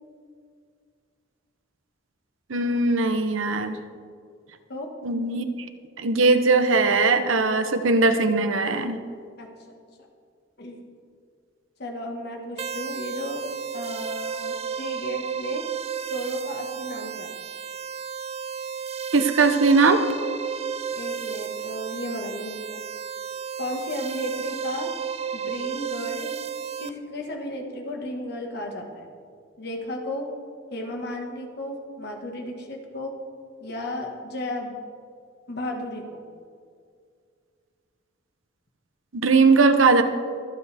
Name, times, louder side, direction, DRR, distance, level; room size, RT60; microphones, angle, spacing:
voice 1, 2.5-3.8 5.0-5.5 6.0-9.0 19.1-20.0 39.1-40.0, right 3 dB, 85° right, 8 dB, 0.9 m, -19 dB
voice 2, 9.4-9.8 10.6-10.8 11.8-13.4 13.7-15.6 16.1-17.3 20.9-22.8 23.6-24.9 25.3-26.3 26.8-29.1 29.6-30.3 30.7-33.1 33.6-34.7 35.5-36.2, left 1 dB, 55° left, 2 dB, 1.7 m, -34 dB
sound 1, 12.6-26.9, right 7 dB, 30° right, 0.4 m, -33 dB
24.0 x 8.1 x 3.5 m, 2.2 s
head